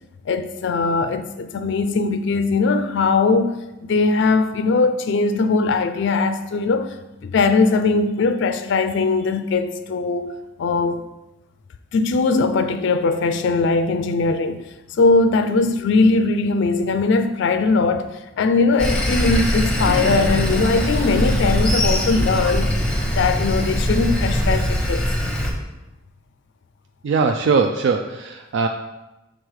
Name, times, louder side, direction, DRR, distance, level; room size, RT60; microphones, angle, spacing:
voice 1, 0.3-3.6 3.8-7.0 7.2-10.3 10.6-11.0 11.9-18.1 18.4-22.7 23.1-25.0, left 3 dB, 60° left, 0.4 m, -20 dB
Sawing, 18.8-25.5, equal, 5° left, 0.8 m, -22 dB
Explosion, 19.7-25.2, equal, 45° right, 0.8 m, -30 dB
voice 2, 27.0-28.7, right 4 dB, 65° right, 0.4 m, -20 dB
6.4 x 3.8 x 4.8 m
head